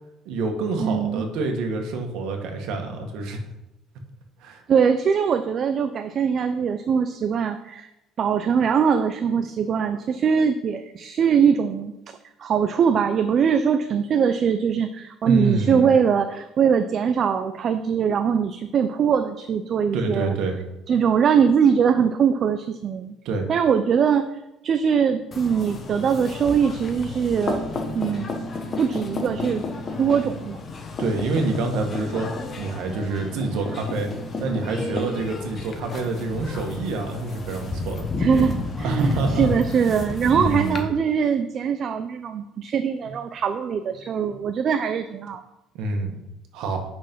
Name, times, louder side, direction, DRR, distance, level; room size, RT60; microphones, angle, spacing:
voice 1, 0.3-3.4 4.4-4.6 15.3-15.9 19.9-20.6 23.3-23.5 31.0-32.3 32.6-34.1 34.4-38.1 38.8-39.5 40.3-40.8 44.3-44.4 45.8-46.2 46.5-46.8, right 3 dB, 75° right, 3 dB, 1.9 m, -26 dB
voice 2, 0.8-1.2 4.7-7.9 8.2-11.9 12.4-20.3 20.9-23.1 23.5-27.6 27.9-28.3 28.8-29.6 30.0-30.6 38.2-45.4, right 7 dB, 40° right, 8 dB, 0.5 m, -22 dB
sound 1, 25.3-40.8, left 3 dB, 30° left, 1.2 m, -31 dB
8.8 x 6.3 x 5.5 m, 0.93 s
cardioid pair, 150°, 0 cm